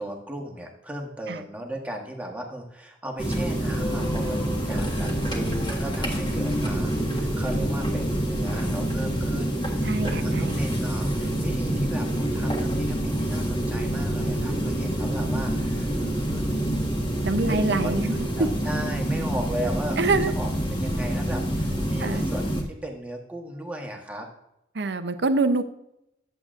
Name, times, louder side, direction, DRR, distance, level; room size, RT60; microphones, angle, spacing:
voice 1, 0.0-16.5 17.4-17.9 18.4-24.3, right 1 dB, 10° right, 0 dB, 1.2 m, -36 dB
sound 1, 3.2-22.6, right 1 dB, 25° left, 1.6 m, -26 dB
voice 2, 9.8-10.6 17.2-18.5 20.0-20.3 22.0-22.3 24.7-25.6, right 3 dB, 60° right, 10 dB, 0.6 m, -25 dB
10.5 x 7.7 x 2.5 m, 0.83 s
head